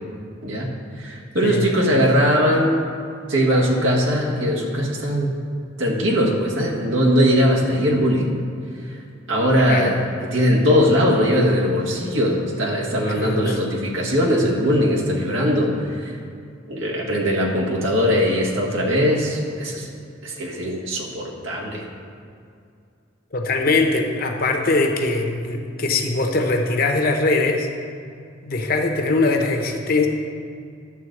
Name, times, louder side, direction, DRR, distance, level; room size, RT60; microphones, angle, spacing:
voice 1, 0.4-2.8 3.3-5.3 5.8-8.3 8.8-9.0 9.3-10.0 10.3-16.2 16.7-19.9 20.2-21.9, equal, 80° right, -2 dB, 1.7 m, -20 dB
voice 2, 13.1-13.6 23.3-27.7 28.4-30.1, left 3 dB, 50° left, 3 dB, 1.0 m, -21 dB
11.5 x 3.9 x 7.7 m, 2.4 s
head